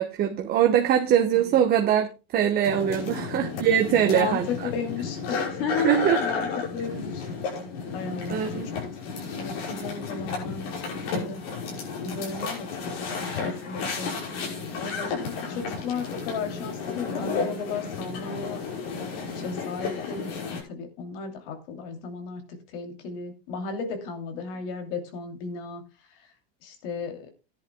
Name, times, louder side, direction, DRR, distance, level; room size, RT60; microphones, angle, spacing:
voice 1, 0.0-4.7 5.8-6.2 8.3-8.7, right 9 dB, 30° right, 4 dB, 1.0 m, -22 dB
sound 1, 2.6-20.6, left 5 dB, 85° left, 5.7 m, -32 dB
voice 2, 4.0-4.4 4.6-5.9 6.2-7.3 7.9-8.7 9.4-11.4 12.0-12.7 13.0-13.3 13.6-14.1 14.7-18.6 19.3-25.8 26.6-27.3, left 5 dB, 65° left, 5 dB, 2.8 m, -35 dB
17.0 x 10.5 x 2.2 m, 0.30 s
supercardioid pair, 140°, 30 cm